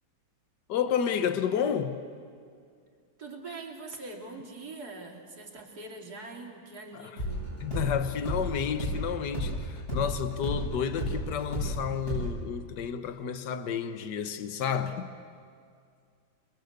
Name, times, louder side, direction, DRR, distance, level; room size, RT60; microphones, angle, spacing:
voice 1, 0.7-2.0 6.9-7.2 7.6-15.2, left 8 dB, 60° left, 1.7 m, -31 dB
voice 2, 3.2-7.4, right 3 dB, 50° right, 3.2 m, -43 dB
sound 1, 7.2-11.8 12.1-12.3, equal, 35° left, 8.5 m, -32 dB
29.0 x 22.0 x 8.0 m
omnidirectional pair, 2.1 m